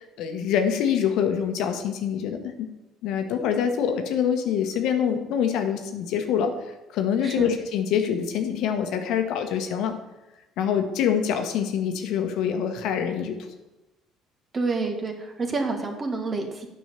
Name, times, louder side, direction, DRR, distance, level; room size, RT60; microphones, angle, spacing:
voice 1, 0.0-2.5 3.0-6.5 6.9-9.9 10.6-13.4, left 8 dB, 65° left, 6 dB, 1.1 m, -25 dB
voice 2, 7.2-7.6 14.5-16.7, right 3 dB, 35° right, 4 dB, 1.7 m, -28 dB
9.1 x 5.4 x 6.7 m, 1.0 s
hypercardioid pair, 55°, 0 cm